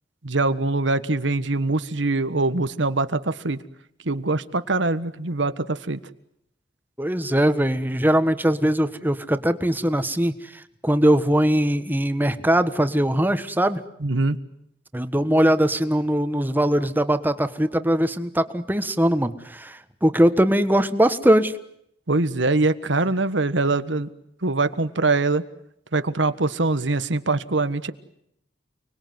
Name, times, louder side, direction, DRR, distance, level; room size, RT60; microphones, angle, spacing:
voice 1, 0.2-3.6 4.0-6.0 14.0-14.4 22.1-24.1 24.4-25.4 25.9-27.9, right 3 dB, 80° right, 12 dB, 1.5 m, -23 dB
voice 2, 7.0-13.8 14.9-21.5, right 1 dB, 10° right, 10 dB, 1.4 m, -21 dB
30.0 x 20.5 x 9.6 m, 0.76 s
head